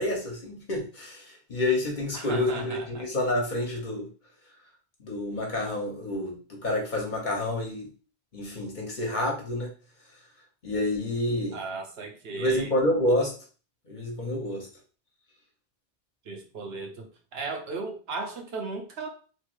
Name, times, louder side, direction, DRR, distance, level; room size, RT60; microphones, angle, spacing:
voice 1, 0.0-4.1 5.0-7.9 8.3-9.7 10.6-11.6 12.3-13.3 13.9-14.7, left 1 dB, 50° left, 0 dB, 1.0 m, -28 dB
voice 2, 2.1-3.1 11.5-12.7 16.3-19.1, right 3 dB, 75° right, 3 dB, 0.9 m, -36 dB
3.2 x 2.6 x 3.1 m, 0.38 s
omnidirectional pair, 1.1 m